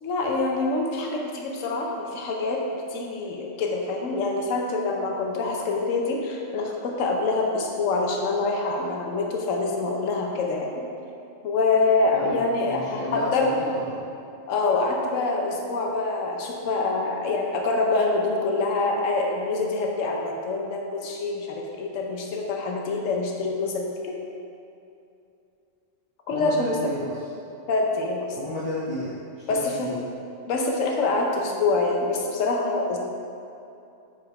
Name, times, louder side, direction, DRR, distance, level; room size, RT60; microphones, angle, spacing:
voice 1, 0.0-2.6 2.9-10.9 11.4-13.5 14.5-24.2 26.3-26.9 27.7-28.3 29.5-29.9 30.5-33.0, left 3 dB, 75° left, 0 dB, 1.1 m, -25 dB
voice 2, 12.6-13.3 26.3-27.2 28.4-30.0, left 1 dB, 25° left, -9 dB, 0.8 m, -32 dB
5.9 x 5.0 x 4.7 m, 2.7 s
omnidirectional pair, 1.4 m